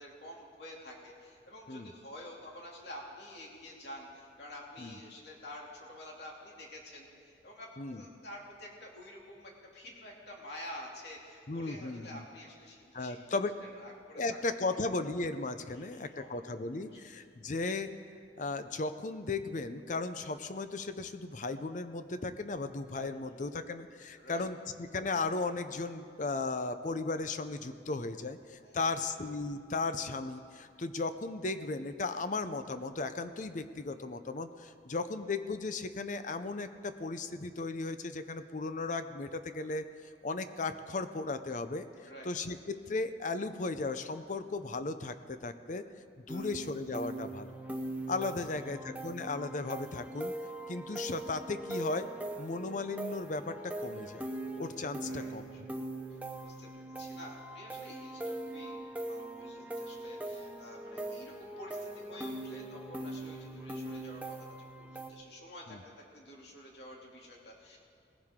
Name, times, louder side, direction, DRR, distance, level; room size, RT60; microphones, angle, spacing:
voice 1, 0.0-13.2 13.6-14.2 14.6-14.8 15.7-16.3 16.9-17.2 23.0-23.5 24.2-24.5 28.6-29.2 42.0-42.3 46.3-46.5 48.4-49.0 55.0-67.8, left 1 dB, 60° left, -2 dB, 2.7 m, -49 dB
voice 2, 11.5-12.2 12.9-13.5 14.1-17.9 18.4-39.8 40.2-41.9 42.2-45.9 46.3-47.5 48.1-50.3 50.7-52.1 52.4-54.3 54.6-55.5 65.7-65.8, left 3 dB, 45° left, 10 dB, 0.6 m, -36 dB
sound 1, 46.3-65.1, right 1 dB, 10° right, 0.8 m, -41 dB
19.5 x 15.0 x 3.7 m, 2.2 s
head